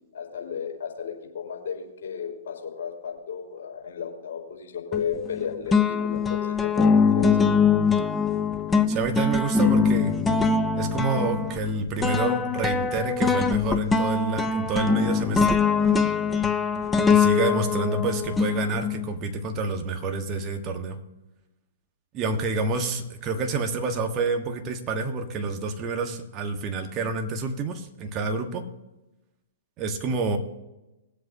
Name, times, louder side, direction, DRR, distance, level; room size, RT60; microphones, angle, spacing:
voice 1, 0.1-7.5 16.8-16.9, left 7 dB, 55° left, 0 dB, 4.9 m, -34 dB
sound 1, 4.9-5.4 5.7-19.1, left 5 dB, 10° left, 0.7 m, -22 dB
voice 2, 8.9-10.2 10.8-15.6 17.1-21.0 22.1-28.6 29.8-30.4, right 3 dB, 30° right, 5 dB, 1.5 m, -28 dB
21.5 x 8.0 x 2.9 m, 0.99 s
figure-of-eight pair, 115°, 0 cm